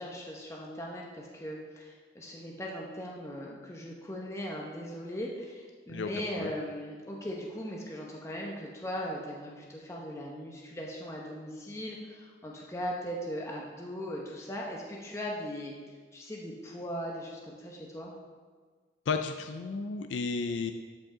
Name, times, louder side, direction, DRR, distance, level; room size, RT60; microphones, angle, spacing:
voice 1, 0.0-18.1, equal, 15° left, -2 dB, 0.8 m, -39 dB
voice 2, 5.9-6.5 19.1-20.7, left 4 dB, 85° left, 7 dB, 0.4 m, -33 dB
13.0 x 5.2 x 3.7 m, 1.5 s
head